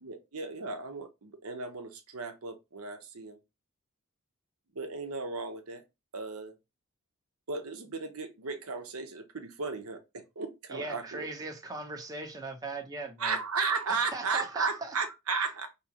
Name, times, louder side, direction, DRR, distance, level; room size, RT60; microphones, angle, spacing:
voice 1, 0.0-3.4 4.7-5.8 6.1-6.5 7.5-11.3 13.2-15.7, right 4 dB, 75° right, 0.8 m, -35 dB
voice 2, 10.7-13.4 13.9-14.9, right 3 dB, 15° right, 0.9 m, -39 dB
4.8 x 3.0 x 2.9 m
head